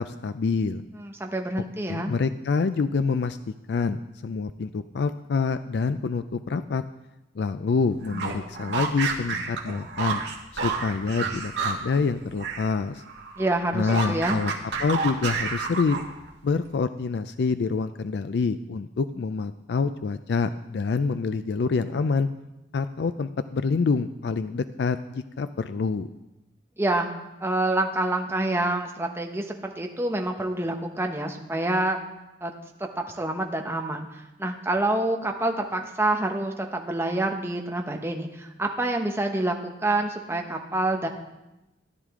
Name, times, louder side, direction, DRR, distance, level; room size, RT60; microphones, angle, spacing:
voice 1, 0.0-0.8 1.9-3.4 3.7-6.8 7.4-10.2 10.5-13.0 13.7-14.5 14.8-16.1 16.4-22.3 22.7-26.1, left 4 dB, 65° left, 11 dB, 0.4 m, -26 dB
voice 2, 1.0-2.1 13.4-14.4 26.8-27.1 27.4-29.4 29.8-32.0 32.4-32.5 33.0-34.1 34.4-39.6 39.8-41.1, right 2 dB, 15° right, 2 dB, 1.0 m, -27 dB
sound 1, 8.0-12.7 13.0-16.3, right 4 dB, 80° right, 1.8 m, -30 dB
13.5 x 10.5 x 3.7 m, 0.96 s
head